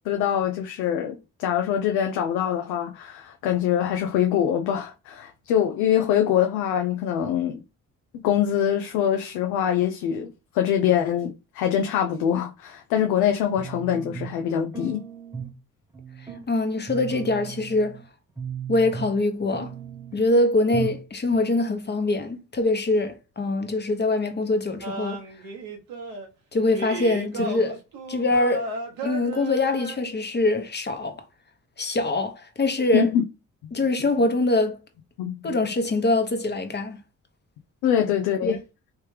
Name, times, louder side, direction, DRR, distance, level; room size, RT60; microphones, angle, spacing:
voice 1, 0.1-7.6 8.2-15.0 32.9-33.2 35.2-35.5 37.8-38.6, left 9 dB, 85° left, 0.5 m, -24 dB
sound 1, 13.6-14.4 14.7-15.6 15.9-16.4 16.9-18.0 18.4-19.2 19.5-20.2 20.7-21.1 21.3-21.4, right 7 dB, 10° right, 1.0 m, -36 dB
voice 2, 16.5-18.0 18.7-19.7 20.1-25.2 26.5-27.8 28.1-28.7 29.0-31.2 31.8-33.1 33.7-34.8 35.4-37.0 38.4-38.6, left 2 dB, 30° left, 1.0 m, -23 dB
sound 2, 24.8-26.3 26.7-30.0, right 2 dB, 85° right, 1.0 m, -34 dB
3.2 x 3.1 x 3.2 m
supercardioid pair, 60°, 35 cm